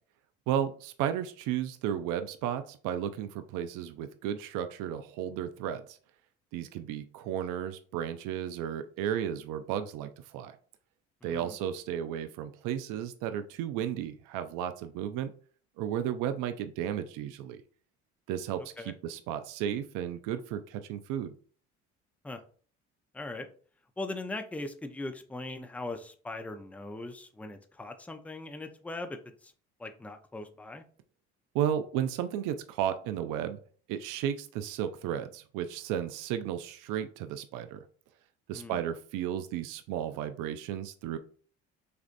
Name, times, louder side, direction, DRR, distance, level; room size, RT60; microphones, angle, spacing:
voice 1, 0.5-6.0 6.5-10.6 11.2-15.3 15.8-17.6 18.3-21.3 31.5-33.6 33.9-37.8 38.5-41.2, right 10 dB, 80° right, 9 dB, 0.5 m, -33 dB
voice 2, 11.2-11.5 18.8-18.9 22.2-22.4 23.1-23.5 24.0-29.5 29.8-30.8 38.5-38.8, left 2 dB, 5° left, 6 dB, 0.5 m, -40 dB
6.6 x 2.5 x 2.5 m, 0.43 s
supercardioid pair, 75°, 31 cm